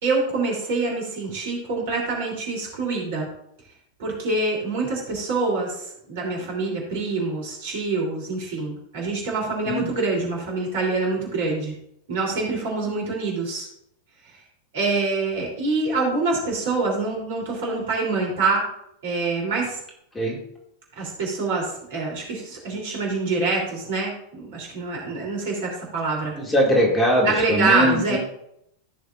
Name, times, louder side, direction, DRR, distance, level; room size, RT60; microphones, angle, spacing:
voice 1, 0.0-3.3 4.0-11.7 12.1-13.7 14.7-18.6 19.0-19.8 21.0-26.3 27.2-28.2, right 3 dB, 55° right, -2 dB, 3.3 m, -25 dB
voice 2, 26.4-28.2, equal, 15° left, -2 dB, 2.4 m, -21 dB
15.0 x 6.4 x 2.6 m, 0.74 s
figure-of-eight pair, 90°, 0 cm